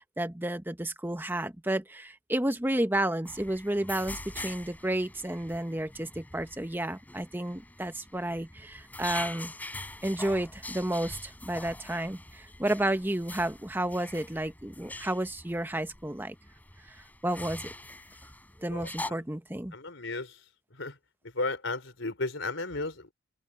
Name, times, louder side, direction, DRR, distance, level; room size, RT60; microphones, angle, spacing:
voice 1, 0.0-9.5 10.0-16.4 17.2-17.7 18.6-19.7, right 1 dB, 10° right, 0.9 m, -31 dB
sound 1, 3.3-19.1, left 2 dB, 10° left, 3.8 m, -44 dB
voice 2, 18.7-19.2 19.7-20.4 20.7-21.0 21.3-23.1, left 2 dB, 65° left, 4.6 m, -34 dB
open air
head